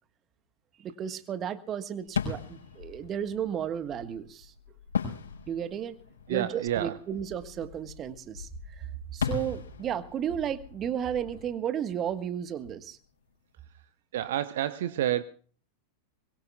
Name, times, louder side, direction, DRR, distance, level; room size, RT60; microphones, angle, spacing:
voice 1, 0.8-4.5 5.5-6.0 6.3-13.0, right 9 dB, 30° right, 12 dB, 1.5 m, -33 dB
sound 1, 2.1-12.7, left 6 dB, 70° left, 5.1 m, -38 dB
voice 2, 6.3-7.0 14.1-15.2, right 12 dB, 55° right, 15 dB, 0.8 m, -29 dB
23.5 x 22.0 x 2.4 m, 0.43 s
figure-of-eight pair, 90°, 0 cm